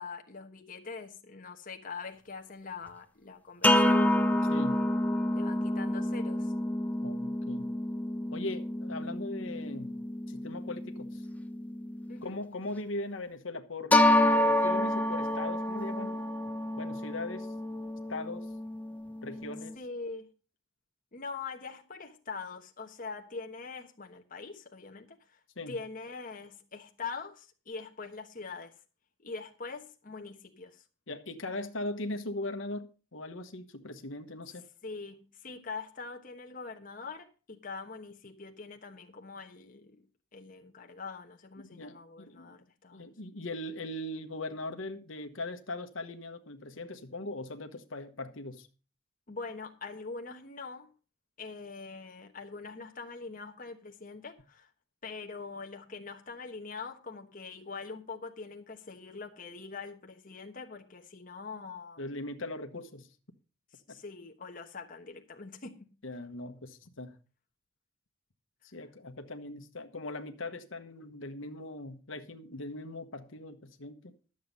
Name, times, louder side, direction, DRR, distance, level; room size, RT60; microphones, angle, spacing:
voice 1, 0.0-4.0 5.3-6.5 12.1-12.4 19.8-20.3 21.1-25.4 25.7-28.7 29.2-30.8 34.8-40.0 40.3-43.1 49.3-50.9 51.4-54.7 55.0-62.0 63.7-65.9, left 4 dB, 45° left, 1.2 m, -43 dB
sound 1, 3.6-12.3 13.9-19.7, left 1 dB, 10° left, 0.6 m, -29 dB
voice 2, 4.5-4.8 7.0-7.7 8.3-9.9 10.3-11.2 12.2-14.0 14.3-16.3 16.8-17.5 18.1-18.5 19.2-19.8 25.6-25.8 31.1-34.6 41.7-42.6 42.9-48.7 62.0-63.1 63.9-64.0 66.0-67.2 68.6-74.1, left 2 dB, 80° left, 1.2 m, -40 dB
12.0 x 7.6 x 5.4 m
head